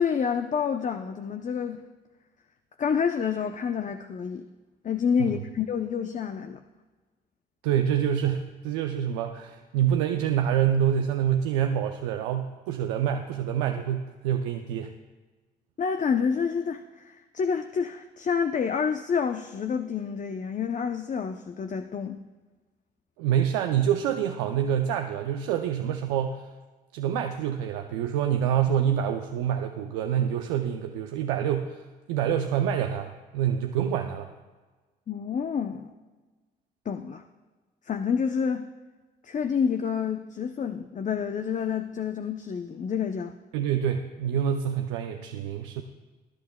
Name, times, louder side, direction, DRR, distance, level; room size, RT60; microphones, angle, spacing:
voice 1, 0.0-1.8 2.8-4.5 4.8-6.6 15.8-22.2 35.1-35.9 36.9-37.2 37.9-38.7 39.2-43.3, left 6 dB, 40° left, 8 dB, 0.6 m, -28 dB
voice 2, 7.6-14.9 23.2-26.5 26.9-31.8 32.1-34.3 43.5-45.8, right 9 dB, 85° right, 5 dB, 0.5 m, -26 dB
19.5 x 11.5 x 2.2 m, 1.3 s
hypercardioid pair, 50°, 20 cm